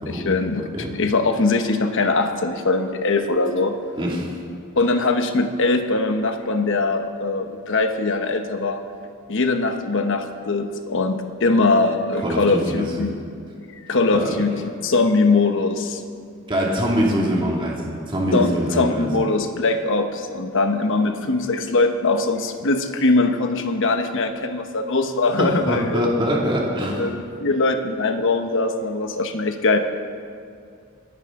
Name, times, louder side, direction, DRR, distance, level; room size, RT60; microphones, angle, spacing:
voice 1, 0.1-0.7 1.0-3.8 4.8-8.8 9.3-13.2 13.8-14.5 14.8-16.0 18.3-26.0 26.9-29.8, left 3 dB, 60° left, 7 dB, 1.1 m, -21 dB
voice 2, 4.0-4.4 12.2-13.1 14.1-14.4 16.5-19.1 25.4-27.1, equal, 25° right, -3 dB, 2.3 m, -23 dB
26.5 x 10.5 x 3.7 m, 2.3 s
head